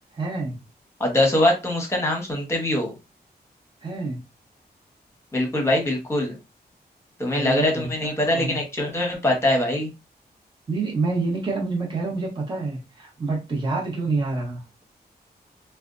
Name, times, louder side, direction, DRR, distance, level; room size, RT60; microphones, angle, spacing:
voice 1, 0.1-0.6 3.8-4.2 7.4-8.6 10.7-14.6, right 3 dB, 30° right, -2 dB, 1.0 m, -27 dB
voice 2, 1.0-2.9 5.3-6.4 7.2-9.9, left 1 dB, 15° left, 1 dB, 1.0 m, -23 dB
4.2 x 2.2 x 2.5 m, 0.26 s
wide cardioid pair, 170°, 17 cm